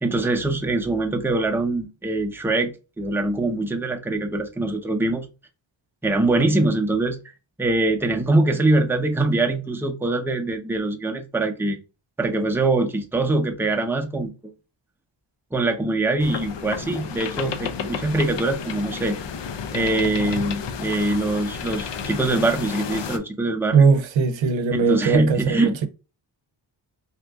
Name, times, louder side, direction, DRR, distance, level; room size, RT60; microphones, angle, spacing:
voice 1, 0.0-5.3 6.0-7.2 7.6-11.8 12.2-14.3 15.5-19.2 19.7-23.9 24.9-25.8, right 2 dB, 5° right, 0.5 m, -23 dB
sound 1, 16.2-23.2, left 6 dB, 70° left, 0.6 m, -32 dB
voice 2, 23.7-25.9, right 5 dB, 85° right, 0.7 m, -19 dB
2.9 x 2.4 x 3.4 m
cardioid pair, 85°, 45 cm